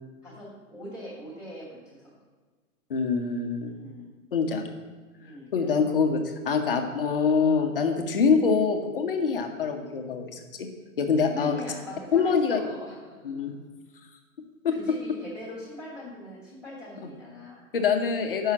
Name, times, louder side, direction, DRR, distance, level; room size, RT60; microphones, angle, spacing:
voice 1, 0.2-2.2 3.7-4.1 5.2-5.9 11.3-13.3 14.7-17.7, left 1 dB, 5° right, -9 dB, 1.3 m, -42 dB
voice 2, 2.9-3.7 4.3-4.7 5.5-6.2 6.4-10.7 11.0-11.6 12.1-12.6 13.2-13.5 14.6-14.8 17.0-17.1 17.7-18.5, left 5 dB, 40° left, 5 dB, 0.8 m, -24 dB
7.1 x 5.6 x 5.9 m, 1.4 s
hypercardioid pair, 180°, 42 cm